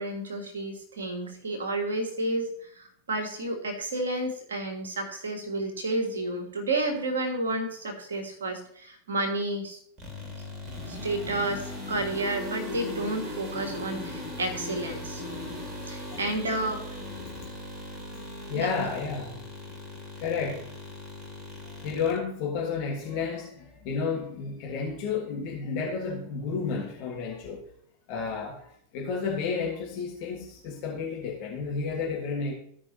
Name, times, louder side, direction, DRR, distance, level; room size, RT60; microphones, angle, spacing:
voice 1, 0.0-9.8 10.9-15.2 15.8-16.8 18.6-18.7, right 2 dB, 70° right, 3 dB, 1.6 m, -31 dB
sound 1, 10.0-22.2, left 2 dB, 25° right, 2.1 m, -38 dB
voice 2, 18.1-19.4 20.2-20.8 21.6-27.6 28.1-32.5, left 5 dB, 45° left, -2 dB, 1.7 m, -32 dB
15.0 x 5.3 x 2.9 m, 0.65 s
figure-of-eight pair, 90°, 0 cm